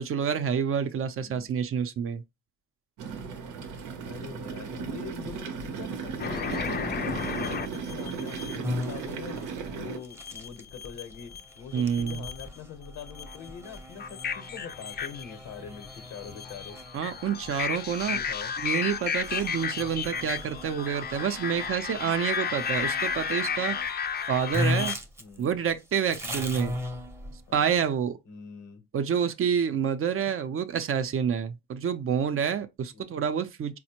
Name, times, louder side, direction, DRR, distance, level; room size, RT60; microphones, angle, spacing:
voice 1, 0.0-2.2 11.7-12.2 16.9-18.2 18.6-23.8 24.3-25.0 25.4-26.8 27.5-28.2 28.9-33.8, right 7 dB, 45° right, 0.5 m, -28 dB
voice 2, 1.2-1.5 3.1-3.4 3.7-16.8 17.3-17.4 18.0-18.5 22.0-22.5 25.2-25.7 26.5-26.6 27.5-27.8 28.3-28.8 29.7-29.8 32.9-33.2, left 7 dB, 85° left, 0.8 m, -44 dB
sound 1, 3.0-10.0, right 6 dB, 90° right, 0.7 m, -36 dB
sound 2, 6.2-8.6 10.1-11.4 11.7-12.6 13.0-25.0, left 6 dB, 35° left, 0.4 m, -33 dB
sound 3, 8.6-21.8 22.5-23.9 24.2-24.3 24.5-27.6, left 1 dB, 10° right, 0.7 m, -38 dB
4.2 x 2.1 x 2.8 m
cardioid pair, 90°, 30 cm